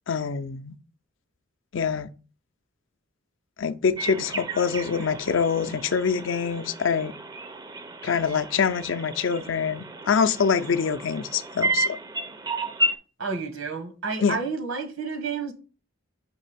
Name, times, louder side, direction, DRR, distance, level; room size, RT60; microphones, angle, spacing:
voice 1, 0.1-0.8 1.7-2.1 3.6-7.1 8.0-12.0 14.2-14.4, left 6 dB, 60° left, 0.4 m, -25 dB
sound 1, 4.0-13.0, right 1 dB, 20° right, 0.4 m, -32 dB
voice 2, 13.2-15.5, right 4 dB, 80° right, 1.4 m, -30 dB
5.2 x 3.3 x 5.6 m
head